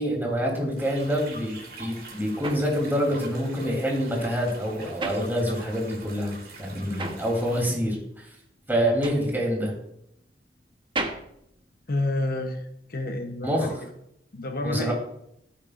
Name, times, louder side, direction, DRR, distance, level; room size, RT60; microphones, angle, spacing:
voice 1, 0.0-6.3 6.6-8.3 8.7-9.7 13.4-13.7 14.6-14.9, equal, 10° right, -2 dB, 3.3 m, -26 dB
sound 1, 0.8-7.6, right 2 dB, 65° right, 3.4 m, -45 dB
sound 2, 2.4-6.0 6.2-12.5, right 2 dB, 30° right, 1.0 m, -37 dB
voice 2, 11.9-13.8 14.3-14.9, left 2 dB, 60° left, 5 dB, 0.9 m, -29 dB
16.0 x 9.1 x 2.5 m, 0.76 s
head